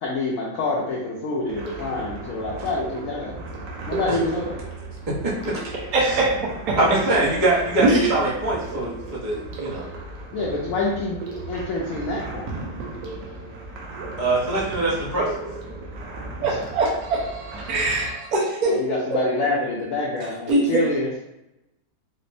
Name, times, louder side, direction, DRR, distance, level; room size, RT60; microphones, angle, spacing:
voice 1, 0.0-3.3 3.9-4.6 10.3-11.2 11.5-12.6 16.4-16.5 18.6-21.1, left 2 dB, 70° left, -4 dB, 0.8 m, -27 dB
sound 1, 1.5-18.1, right 3 dB, 85° right, 1.2 m, -35 dB
voice 2, 5.1-5.7 6.0-6.2 6.8-9.9 14.2-15.3 17.1-17.2 17.6-18.2, right 2 dB, 35° right, -8 dB, 0.6 m, -24 dB
voice 3, 5.9-6.3 6.7-6.8 7.8-8.1 16.4-17.2 17.7-18.1 18.3-18.8 19.1-19.5 20.5-20.8, right 2 dB, 65° right, -5 dB, 1.3 m, -21 dB
4.3 x 2.0 x 2.6 m, 0.89 s
omnidirectional pair, 1.9 m